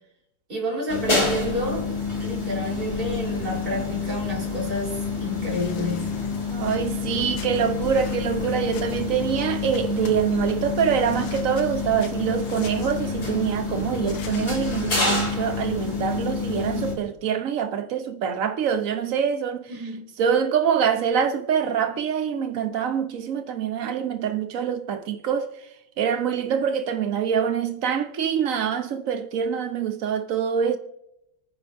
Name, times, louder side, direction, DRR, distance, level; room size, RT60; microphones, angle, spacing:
voice 1, 0.5-1.9 2.2-6.1 19.7-20.0, left 1 dB, 25° right, 4.0 m, -30 dB
sound 1, 0.9-16.9, left 4 dB, 30° left, 3.1 m, -28 dB
sound 2, 3.0-15.6, left 4 dB, 70° left, 1.7 m, -42 dB
voice 2, 6.5-19.8 20.2-25.5 26.0-30.8, right 8 dB, 55° right, 1.0 m, -25 dB
28.5 x 9.6 x 2.7 m
omnidirectional pair, 2.2 m